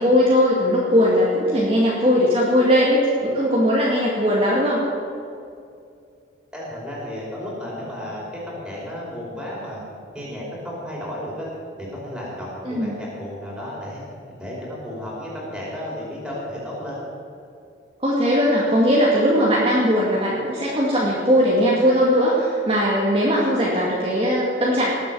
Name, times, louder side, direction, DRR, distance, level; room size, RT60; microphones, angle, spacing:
voice 1, 0.0-4.8 12.7-12.9 18.0-25.0, equal, 30° right, -5 dB, 2.2 m, -19 dB
voice 2, 6.5-9.8 10.1-11.5 11.8-14.0 14.4-17.0, left 1 dB, 5° right, -6 dB, 5.0 m, -33 dB
19.5 x 8.4 x 7.6 m, 2.4 s
head